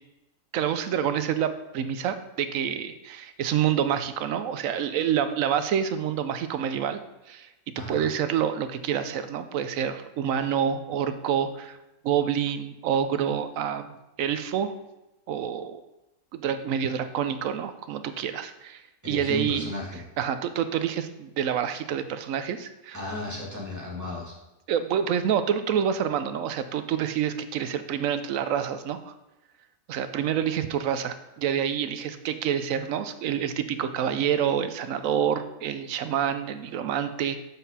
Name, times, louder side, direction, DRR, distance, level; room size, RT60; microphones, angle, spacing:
voice 1, 0.5-7.0 7.3-7.5 7.8-11.8 12.0-14.7 15.3-15.8 16.3-18.8 19.1-19.7 20.2-23.0 24.7-29.1 29.9-37.4, right 8 dB, 80° right, 10 dB, 1.0 m, -27 dB
voice 2, 19.0-20.0 22.9-24.3, left 1 dB, 15° right, -4 dB, 1.9 m, -34 dB
7.3 x 5.7 x 4.1 m, 0.96 s
omnidirectional pair, 1.4 m